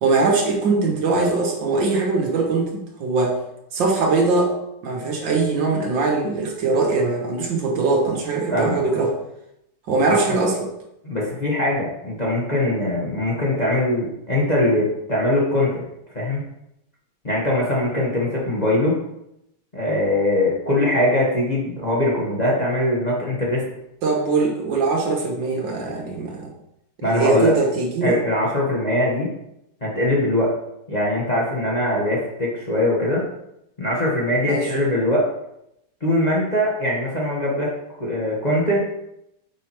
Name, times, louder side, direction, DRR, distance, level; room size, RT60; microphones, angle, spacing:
voice 1, 0.0-3.4 3.7-4.5 4.8-9.2 9.9-10.7 24.0-26.5 27.0-28.2 34.5-34.7, right 3 dB, 65° right, 1 dB, 1.8 m, -21 dB
voice 2, 8.5-9.0 10.3-10.4 11.0-15.9 16.1-16.4 17.2-19.0 19.7-23.6 27.0-27.5 28.0-29.3 29.8-30.6 30.9-33.3 33.8-35.3 36.0-38.8, left 1 dB, 25° left, -4 dB, 1.2 m, -22 dB
8.2 x 6.1 x 3.0 m, 0.82 s
omnidirectional pair, 2.3 m